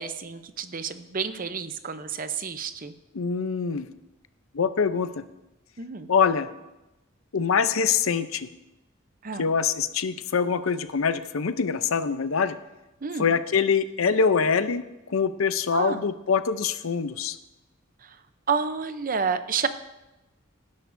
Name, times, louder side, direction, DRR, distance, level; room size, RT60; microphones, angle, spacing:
voice 1, 0.0-2.9 5.8-6.1 9.2-9.5 13.0-13.3 15.7-16.0 18.5-19.7, right 5 dB, 45° right, 10 dB, 0.7 m, -30 dB
voice 2, 3.1-3.8 4.5-5.1 6.1-6.5 7.3-8.5 9.4-12.6 13.2-14.8 15.1-17.4, left 6 dB, 85° left, 12 dB, 0.6 m, -24 dB
18.5 x 10.5 x 2.7 m, 0.98 s
head